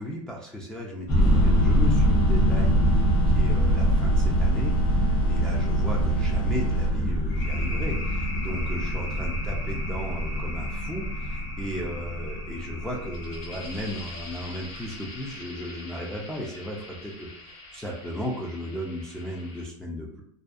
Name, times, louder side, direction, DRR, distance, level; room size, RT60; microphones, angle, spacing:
voice 1, 0.0-20.2, equal, 5° left, -4 dB, 0.3 m, -35 dB
sound 1, 1.1-19.6, left 1 dB, 50° left, 1.1 m, -42 dB
sound 2, 1.1-14.2, equal, 35° left, 0.8 m, -24 dB
sound 3, 1.2-7.3, right 6 dB, 90° left, 0.7 m, -30 dB
2.5 x 2.2 x 2.3 m, 0.70 s
hypercardioid pair, 115°, 17 cm